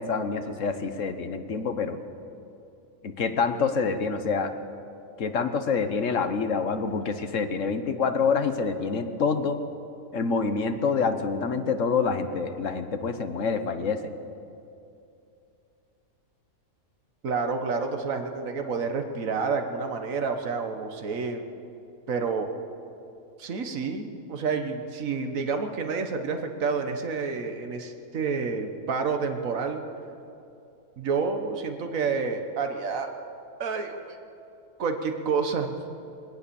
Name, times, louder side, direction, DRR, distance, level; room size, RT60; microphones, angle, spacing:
voice 1, 0.0-2.0 3.0-4.5 5.2-9.6 10.1-14.1, left 5 dB, 60° left, 8 dB, 1.5 m, -27 dB
voice 2, 17.2-21.5 22.1-22.5 23.4-29.8 31.0-33.1 33.6-34.2 34.8-35.8, right 5 dB, 65° right, 5 dB, 1.7 m, -29 dB
21.5 x 18.5 x 7.1 m, 2.7 s
omnidirectional pair, 1.5 m